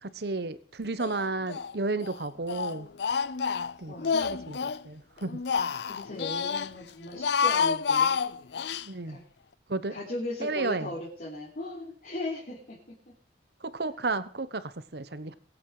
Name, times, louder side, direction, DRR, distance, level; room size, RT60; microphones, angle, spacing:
voice 1, 0.0-2.9 3.8-5.4 8.8-9.2 9.7-10.0 10.4-10.9 13.6-15.3, right 3 dB, 65° right, 14 dB, 1.1 m, -33 dB
Speech, 1.0-1.7 2.0-4.8 5.2-6.7 7.1-8.9, left 6 dB, 65° left, 0.5 m, -29 dB
voice 2, 3.9-4.3 5.8-8.2 9.0-9.2 9.9-13.0, left 2 dB, 50° left, -4 dB, 3.8 m, -38 dB
22.0 x 8.5 x 4.9 m, 0.42 s
head